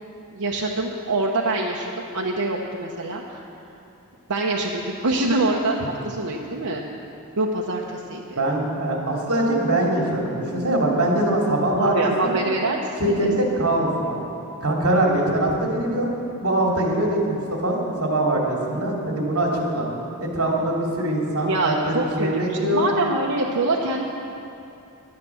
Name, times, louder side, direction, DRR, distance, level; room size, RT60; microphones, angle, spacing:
voice 1, 0.3-3.4 4.3-6.9 7.4-8.4 11.8-12.8 13.1-13.3 21.4-22.3 22.7-24.1, right 2 dB, 90° right, -2 dB, 1.0 m, -25 dB
voice 2, 8.4-12.4 13.0-14.2 14.6-16.1 16.4-19.9 20.2-22.8, right 1 dB, 75° right, -2 dB, 2.7 m, -22 dB
11.0 x 10.5 x 7.1 m, 2.7 s
head